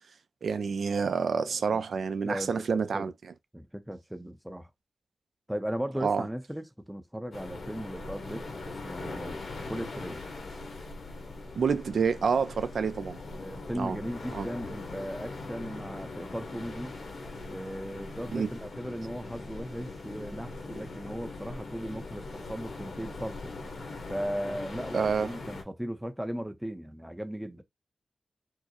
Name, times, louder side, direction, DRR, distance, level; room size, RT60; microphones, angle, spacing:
voice 1, 0.4-3.1 6.0-6.2 11.6-13.2 13.7-14.0 14.3-14.5 18.3-18.5 24.9-25.3, right 5 dB, 75° right, 0.4 m, -28 dB
voice 2, 1.5-1.8 2.2-3.1 3.5-4.7 5.5-9.4 9.7-10.3 13.4-17.0 17.5-23.5 24.1-27.6, equal, 5° right, 0.5 m, -37 dB
sound 1, 7.3-25.6, left 3 dB, 80° left, 1.1 m, -41 dB
4.5 x 2.0 x 2.9 m
wide cardioid pair, 160°, 0 cm